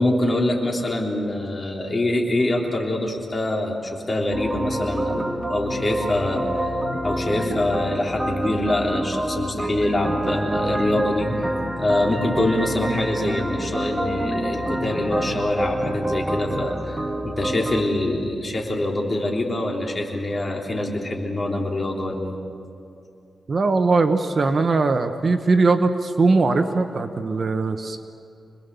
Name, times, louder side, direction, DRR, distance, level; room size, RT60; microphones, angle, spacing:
voice 1, 0.0-6.5 7.0-11.3 11.8-17.0 17.2-22.4, left 1 dB, 30° left, -1 dB, 3.4 m, -24 dB
sound 1, 4.3-17.8, right 1 dB, 15° right, 1.8 m, -27 dB
voice 2, 23.5-28.0, right 3 dB, 40° right, 7 dB, 1.0 m, -20 dB
27.0 x 20.5 x 7.0 m, 2.5 s
wide cardioid pair, 130°, 0 cm